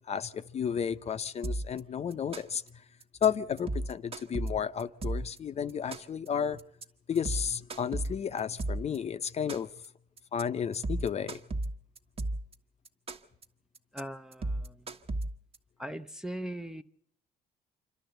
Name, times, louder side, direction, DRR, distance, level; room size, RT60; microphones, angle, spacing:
voice 1, 0.1-2.8 3.2-6.6 7.1-9.8 10.3-11.4, left 7 dB, 40° left, 0.8 m, -32 dB
sound 1, 1.4-1.8 2.1-2.7 3.0-3.3 3.6-5.4 5.7-6.3 6.6-6.8 7.2-9.0 9.3-9.9 10.2-10.4 10.7-12.5 12.9-13.4 13.8-14.0 14.3-15.6, right 2 dB, 35° right, 1.5 m, -34 dB
voice 2, 13.9-14.9 15.8-16.8, right 1 dB, 5° right, 0.7 m, -40 dB
27.0 x 12.0 x 7.9 m
cardioid pair, 110°, 17 cm